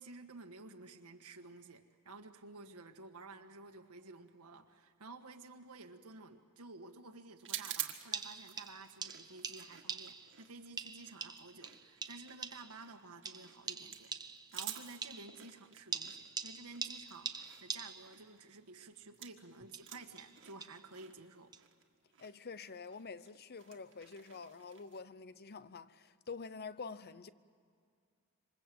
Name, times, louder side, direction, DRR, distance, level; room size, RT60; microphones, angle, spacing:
voice 1, 0.0-14.1 14.5-21.5, right 3 dB, 85° right, 1.6 m, -53 dB
sound 1, 7.4-19.5 19.7-25.0, right 11 dB, 60° right, 1.8 m, -49 dB
sound 2, 7.6-7.7 8.1-10.4 10.8-12.8 13.2-15.5 15.9-18.2 19.6-20.9 21.5-21.6, right 5 dB, 20° right, 0.9 m, -44 dB
voice 2, 22.2-27.3, left 4 dB, 45° left, 0.8 m, -47 dB
27.0 x 25.5 x 7.8 m
head